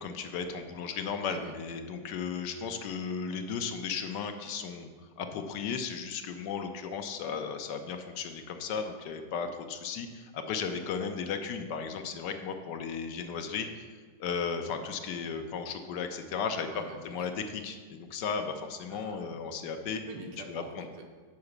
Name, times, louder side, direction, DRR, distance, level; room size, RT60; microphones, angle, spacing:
voice 1, 0.0-4.9 5.2-13.9 14.2-16.7 17.0-20.0 20.5-20.9, left 6 dB, 75° left, 6 dB, 1.3 m, -35 dB
voice 2, 16.7-17.4 18.9-19.3 20.1-21.1, right 3 dB, 85° right, 3 dB, 1.7 m, -46 dB
7.1 x 4.8 x 6.5 m, 1.5 s
omnidirectional pair, 1.9 m